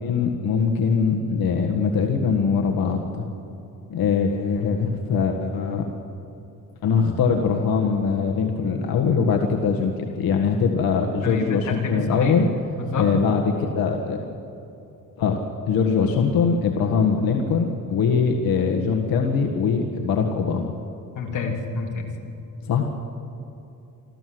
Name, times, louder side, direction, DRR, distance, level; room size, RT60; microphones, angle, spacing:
voice 1, 0.0-3.2 3.9-5.9 6.8-12.5 13.0-14.2 15.2-15.4 15.7-20.7 22.6-22.9, left 5 dB, 90° left, 2 dB, 1.7 m, -22 dB
voice 2, 11.2-12.3 12.8-13.1 21.1-22.1, left 4 dB, 60° left, 0 dB, 3.3 m, -28 dB
27.0 x 13.5 x 7.9 m, 2.9 s
wide cardioid pair, 175°, 35 cm